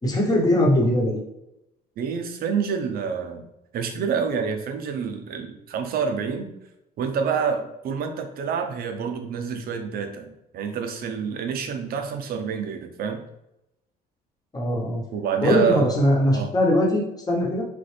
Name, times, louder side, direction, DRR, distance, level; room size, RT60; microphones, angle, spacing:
voice 1, 0.0-1.2 14.5-15.0 15.4-17.7, left 1 dB, 20° left, -2 dB, 1.2 m, -21 dB
voice 2, 2.0-3.5 3.7-6.5 7.0-13.2 15.1-15.9 16.3-16.5, right 6 dB, 65° right, 6 dB, 0.7 m, -27 dB
4.1 x 3.2 x 3.3 m, 0.86 s
cardioid pair, 110°, 17 cm